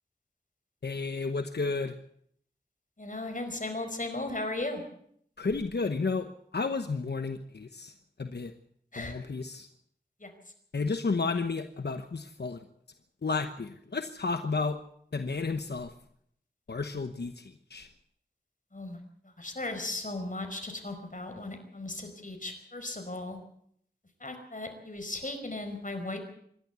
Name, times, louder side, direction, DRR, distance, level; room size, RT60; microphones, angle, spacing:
voice 1, 0.8-1.9 5.4-6.3 6.5-7.9 8.2-8.5 9.0-9.7 10.7-12.6 13.2-14.8 15.1-15.9 16.7-17.9, left 4 dB, 90° left, 7 dB, 1.0 m, -32 dB
voice 2, 3.0-4.8 8.9-9.1 10.2-10.3 18.7-23.4 24.2-26.2, left 2 dB, 50° left, 6 dB, 4.9 m, -37 dB
26.0 x 12.0 x 8.3 m, 0.69 s
wide cardioid pair, 55°, 17 cm